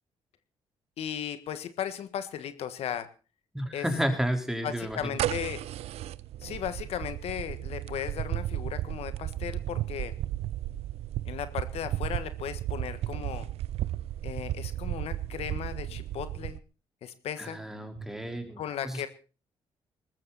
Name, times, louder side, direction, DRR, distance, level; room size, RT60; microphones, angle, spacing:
voice 1, 1.0-3.1 3.7-3.9 4.6-5.6 6.4-10.1 11.2-13.5 14.2-16.6 17.0-17.6 18.6-19.1, left 9 dB, 75° left, 12 dB, 1.5 m, -36 dB
voice 2, 3.5-5.2 17.4-19.1, equal, 5° right, 5 dB, 4.3 m, -32 dB
sound 1, 4.9-16.6, right 13 dB, 80° right, 0.7 m, -34 dB
20.0 x 14.0 x 4.2 m, 0.36 s
cardioid pair, 85°, 10 cm